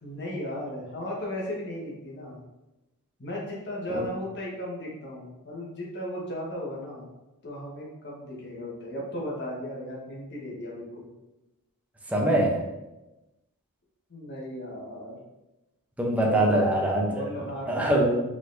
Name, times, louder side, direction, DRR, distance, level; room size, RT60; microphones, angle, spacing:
voice 1, 0.0-2.4 3.2-7.1 7.4-11.1 14.1-15.2 16.2-16.7 17.1-17.9, left 1 dB, 50° left, -4 dB, 1.3 m, -36 dB
voice 2, 12.1-12.6 16.0-18.2, right 1 dB, 5° right, -2 dB, 0.7 m, -24 dB
5.3 x 3.8 x 2.6 m, 1.0 s
head